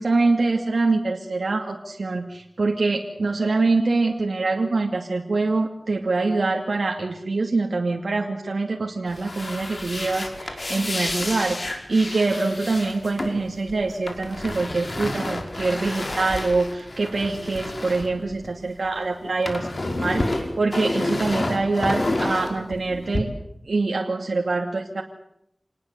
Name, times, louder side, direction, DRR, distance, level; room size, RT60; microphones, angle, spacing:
voice 1, 0.0-23.3 23.7-25.0, right 3 dB, 85° right, 2 dB, 2.5 m, -24 dB
sound 1, 9.1-18.9 19.1-23.2, left 2 dB, 60° left, 5.2 m, -30 dB
28.0 x 19.5 x 8.3 m, 0.76 s
wide cardioid pair, 45°, 0 cm